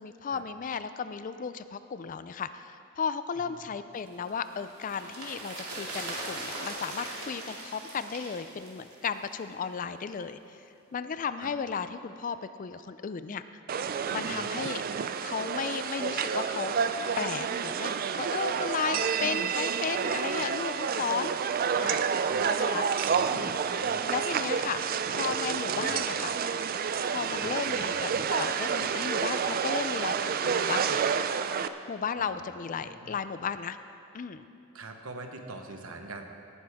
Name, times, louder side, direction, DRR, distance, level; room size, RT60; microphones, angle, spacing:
voice 1, 0.0-10.6 10.9-13.4 14.1-14.8 15.2-16.7 17.2-21.3 21.8-22.1 22.5-22.9 23.3-23.8 24.1-26.3 27.1-31.0 31.9-33.8 34.1-34.4, left 6 dB, 35° left, 12 dB, 0.3 m, -34 dB
sound 1, 4.1-9.5 9.8-9.9, right 2 dB, 90° right, 2.7 m, -40 dB
sound 2, 13.7-31.7, right 6 dB, 40° right, 0.4 m, -29 dB
voice 2, 23.1-23.4 23.8-24.7 25.8-26.1 27.4-28.0 32.2-32.3 32.8-33.2 34.7-36.3, right 2 dB, 70° right, 4 dB, 1.1 m, -45 dB
18.5 x 9.6 x 3.5 m, 2.7 s
head